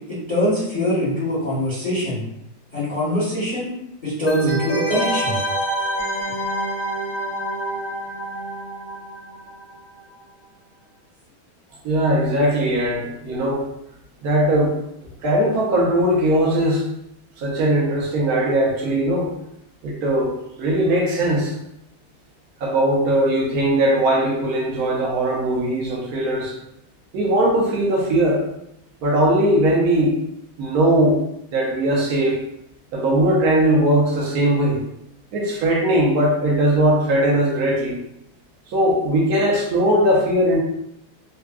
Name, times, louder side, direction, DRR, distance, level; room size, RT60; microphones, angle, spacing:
voice 1, 0.1-2.2 2.7-3.7 4.0-5.4, equal, 30° left, -10 dB, 0.9 m, -23 dB
sound 1, 4.3-9.7 10.0-10.1, right 1 dB, 55° left, 0.4 m, -27 dB
voice 2, 11.8-13.7 14.2-14.7 15.2-16.8 17.4-19.3 19.8-21.5 22.6-26.5 27.1-28.4 29.0-30.2 30.6-31.2 31.5-32.4 32.9-34.8 35.3-38.0 38.7-40.6, right 1 dB, 60° right, -3 dB, 1.0 m, -19 dB
3.7 x 2.2 x 2.3 m, 0.79 s
omnidirectional pair, 2.2 m